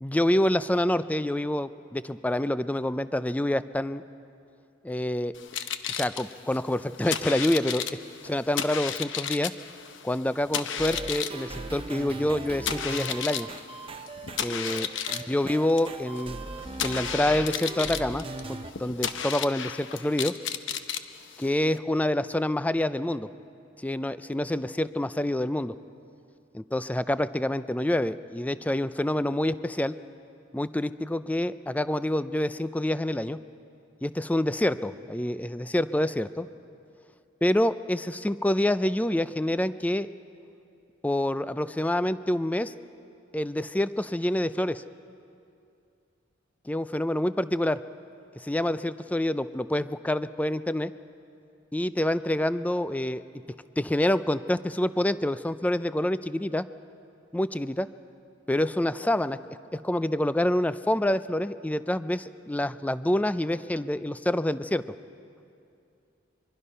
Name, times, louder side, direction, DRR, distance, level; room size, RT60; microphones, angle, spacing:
voice 1, 0.0-4.0 4.8-5.3 5.9-7.9 8.2-9.5 10.0-13.5 14.4-16.4 16.8-20.3 21.4-23.3 23.8-25.7 26.5-30.0 30.5-33.4 34.0-36.5 37.4-40.1 41.0-42.7 43.3-44.8 46.7-47.8 48.4-50.9 51.7-53.2 53.8-56.6 57.3-57.9 58.5-64.8, left 1 dB, 10° left, 13 dB, 0.4 m, -27 dB
sound 1, 5.3-21.8, left 8 dB, 65° left, 0.9 m, -34 dB
sound 2, 10.8-18.7, right 3 dB, 30° right, 0.8 m, -39 dB
24.0 x 23.5 x 5.6 m, 2.5 s
head